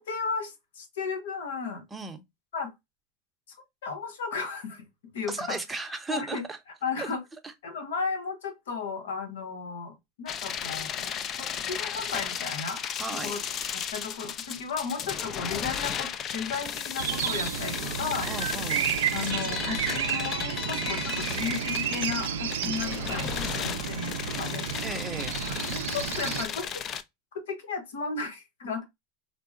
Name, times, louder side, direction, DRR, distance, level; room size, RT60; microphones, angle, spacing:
voice 1, 0.0-1.8 2.5-2.7 3.8-4.8 5.1-5.6 6.1-6.4 6.8-7.2 7.6-12.8 13.2-13.4 13.7-18.3 19.1-24.6 25.4-26.8 27.3-28.8, left 5 dB, 90° left, 0.9 m, -34 dB
voice 2, 1.9-2.2 5.3-6.6 7.0-7.1 7.4-7.5 13.0-13.3 18.3-18.9 22.6-22.8 24.8-25.4, right 3 dB, 10° right, 0.6 m, -36 dB
sound 1, 10.3-27.0, left 8 dB, 40° left, 0.3 m, -35 dB
sound 2, 17.0-26.5, right 9 dB, 90° right, 0.3 m, -31 dB
3.7 x 2.0 x 2.4 m
supercardioid pair, 110°, 0 cm